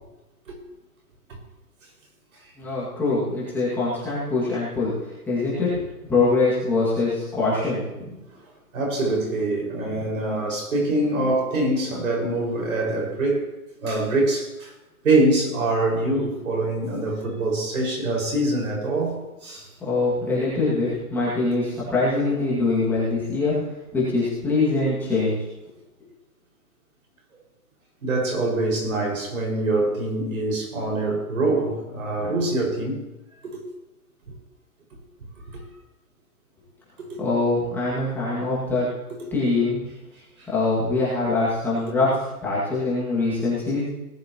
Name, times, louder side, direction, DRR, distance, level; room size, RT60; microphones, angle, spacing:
voice 1, 2.6-5.8 6.1-7.8 19.8-23.6 23.9-25.4 37.2-38.9 39.3-39.8 40.5-42.1 42.4-43.8, left 3 dB, 5° left, 2.1 m, -23 dB
voice 2, 8.7-13.5 13.8-14.7 15.0-19.7 28.0-33.1 33.4-33.6 34.3-34.4 35.5-35.6 37.0-37.2 39.1-39.2 40.4-40.5, right 2 dB, 60° right, 5.7 m, -24 dB
19.0 x 11.5 x 3.0 m
hypercardioid pair, 160°, 46 cm